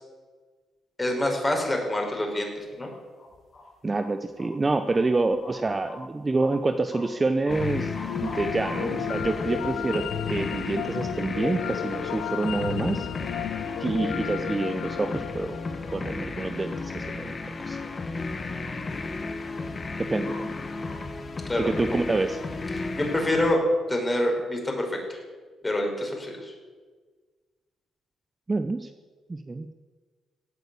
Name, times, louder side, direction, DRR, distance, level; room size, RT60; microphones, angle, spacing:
voice 1, 1.0-2.9 21.5-21.7 22.9-23.6 23.9-25.2 25.6-26.5, left 1 dB, 15° left, 1 dB, 5.0 m, -26 dB
sound 1, 2.4-2.9 3.2-3.7 3.9-4.5 4.9-5.5 5.9-6.0 6.3-6.5 6.9-7.0 7.5-7.6 7.9-9.6 9.9-10.0 10.9-11.5 11.8-12.9 13.2-13.9 14.2-14.4 15.0-16.1 16.8-16.9 17.7-17.8 18.2-19.1 19.3-21.0, left 3 dB, 55° left, 6.7 m, -46 dB
voice 2, 3.8-13.1 13.8-15.6 15.9-17.8 20.0-20.5 21.6-22.4 28.5-28.9 29.3-29.7, right 3 dB, 25° right, 8 dB, 0.8 m, -27 dB
sound 2, 7.5-23.5, left 3 dB, 35° left, 1.5 m, -34 dB
sound 3, 7.6-16.7, left 11 dB, 90° left, 0.6 m, -34 dB
16.5 x 9.0 x 8.4 m, 1.4 s
cardioid pair, 90°, 0 cm